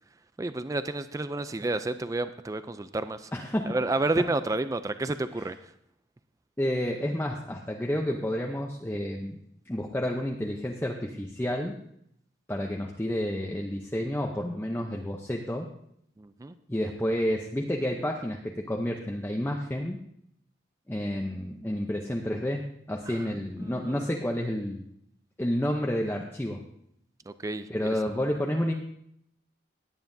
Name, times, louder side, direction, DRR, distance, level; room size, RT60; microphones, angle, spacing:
voice 1, 0.4-3.3 3.7-5.6 16.2-16.6 23.1-23.3 23.6-24.1 27.3-27.9, right 2 dB, 15° right, 11 dB, 0.3 m, -30 dB
voice 2, 3.3-3.6 6.6-9.4 9.7-11.7 12.5-15.7 16.7-20.0 20.9-24.8 25.4-26.6 27.7-28.7, equal, 10° left, 0 dB, 0.7 m, -30 dB
18.0 x 9.2 x 2.7 m, 0.72 s
head